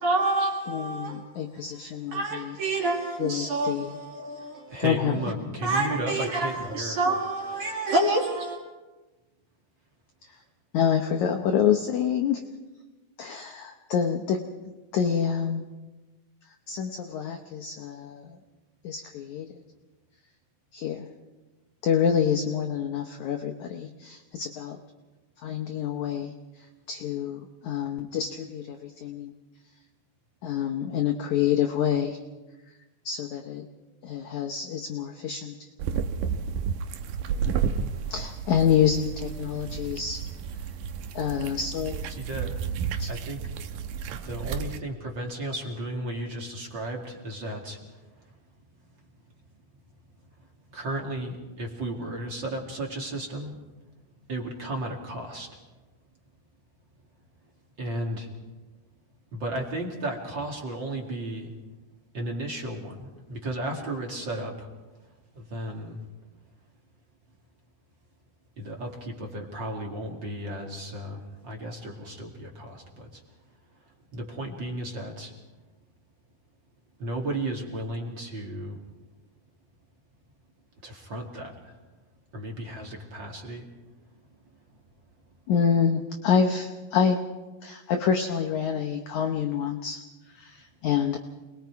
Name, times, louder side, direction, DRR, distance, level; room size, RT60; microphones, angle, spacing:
voice 1, 0.0-1.2 2.1-4.7 5.6-8.6, right 2 dB, 55° right, 3.3 m, -27 dB
voice 2, 0.7-2.6 3.2-4.0 4.8-5.2 10.7-12.4 13.2-14.4 14.9-15.7 16.7-18.4 18.8-19.5 20.7-21.1 21.8-24.8 25.4-26.3 26.9-29.3 30.4-32.2 33.0-33.7 34.0-35.7 38.1-40.2 41.1-42.0 43.0-43.1 85.5-87.2 87.6-90.0 90.3-91.2, left 7 dB, 80° left, 1.7 m, -27 dB
voice 3, 4.7-7.0 42.1-42.5 43.1-43.4 44.2-47.8 50.7-53.6 54.3-55.6 57.8-58.3 59.3-61.5 62.1-64.7 65.3-66.0 68.6-73.2 74.1-75.3 77.0-78.8 80.8-81.7 82.3-83.7, right 1 dB, 35° right, 2.2 m, -34 dB
sound 1, 35.8-44.8, right 7 dB, 75° right, 2.1 m, -32 dB
28.0 x 20.5 x 4.7 m
omnidirectional pair, 4.7 m